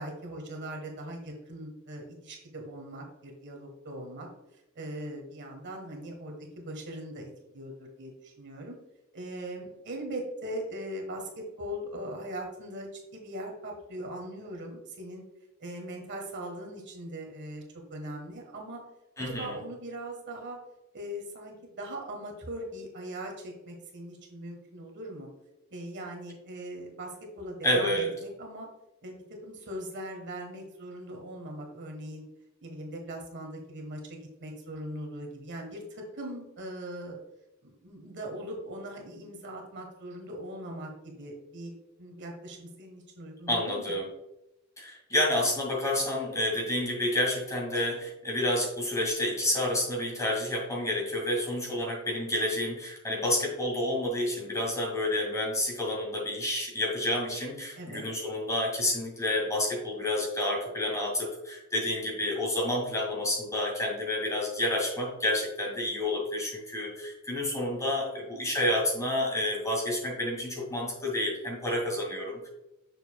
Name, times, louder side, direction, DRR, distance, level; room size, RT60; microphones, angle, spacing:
voice 1, 0.0-4.3 4.7-8.8 9.1-15.2 15.6-17.6 17.9-18.8 19.3-20.6 20.9-25.3 25.7-28.7 29.0-32.2 32.6-37.2 37.6-41.7 42.0-43.9 47.7-47.9 57.8-58.0, right 1 dB, 55° right, 1 dB, 1.4 m, -40 dB
voice 2, 19.2-19.5 27.6-28.1 43.5-44.0 44.8-72.5, left 1 dB, 15° left, -1 dB, 2.1 m, -29 dB
6.7 x 6.5 x 2.3 m, 0.92 s
head